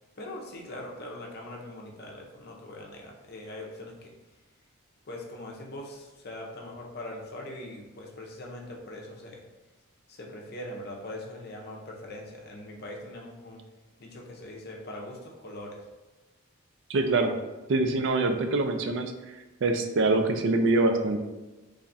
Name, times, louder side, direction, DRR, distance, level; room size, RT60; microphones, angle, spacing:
voice 1, 0.2-4.1 5.1-9.4 10.1-13.6 14.0-15.8, left 1 dB, 50° left, 0 dB, 0.6 m, -41 dB
voice 2, 16.9-17.3 17.7-19.1 19.6-21.2, right 2 dB, 60° right, 6 dB, 0.4 m, -24 dB
3.3 x 2.3 x 4.0 m, 1.1 s
head